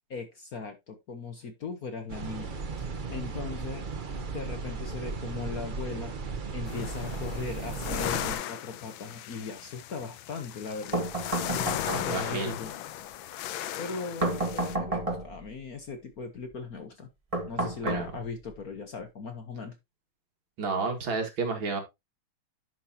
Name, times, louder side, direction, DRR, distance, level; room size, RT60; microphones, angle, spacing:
voice 1, 0.1-3.9 4.3-6.1 6.5-11.0 11.5-12.7 13.8-17.1 17.5-19.8, left 4 dB, 50° left, 7 dB, 1.4 m, -38 dB
sound 1, 2.1-8.4, right 4 dB, 45° right, 0.6 m, -36 dB
sound 2, 6.7-14.8, left 12 dB, 80° left, 1.4 m, -36 dB
sound 3, 10.9-12.2 14.2-15.5 17.3-18.5, right 2 dB, 20° right, 1.3 m, -31 dB
voice 2, 11.9-12.5 17.8-18.1 20.6-21.8, right 4 dB, 70° right, 4 dB, 2.6 m, -30 dB
11.0 x 6.1 x 2.8 m, 0.21 s
omnidirectional pair, 2.3 m